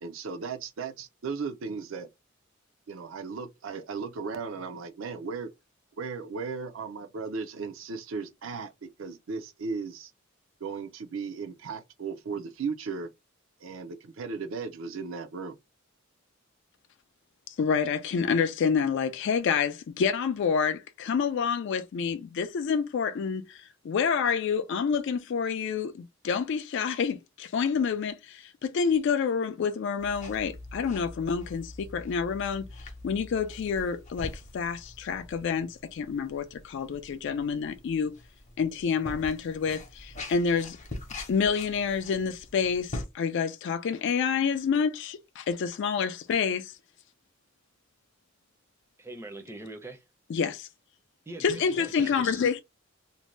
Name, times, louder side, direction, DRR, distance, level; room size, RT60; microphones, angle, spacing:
voice 1, 0.0-2.1 2.9-5.5 6.0-10.1 10.6-13.1 13.6-15.6, right 5 dB, 70° right, 0.5 m, -36 dB
voice 2, 17.6-32.6 33.0-38.1 38.6-40.8 41.3-46.7 50.3-50.7 51.4-52.6, left 6 dB, 60° left, 0.3 m, -28 dB
sound 1, 30.0-43.1, left 2 dB, 35° left, 0.7 m, -44 dB
voice 3, 49.0-50.0 51.3-52.4, right 2 dB, 10° right, 0.5 m, -42 dB
2.6 x 2.1 x 3.1 m
head